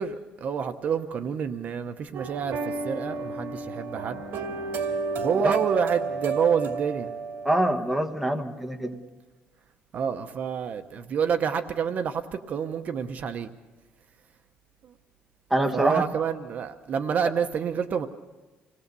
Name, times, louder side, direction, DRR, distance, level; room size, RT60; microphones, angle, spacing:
voice 1, 0.0-4.2 5.2-7.1 9.9-13.5 14.8-14.9 15.7-18.1, right 7 dB, 45° right, 9 dB, 0.9 m, -28 dB
sound 1, 2.1-8.1, right 4 dB, 70° right, 2.5 m, -32 dB
voice 2, 7.4-9.0 15.5-16.0, right 1 dB, 5° right, 5 dB, 1.3 m, -25 dB
27.0 x 19.0 x 6.8 m, 1.2 s
cardioid pair, 155°, 4 cm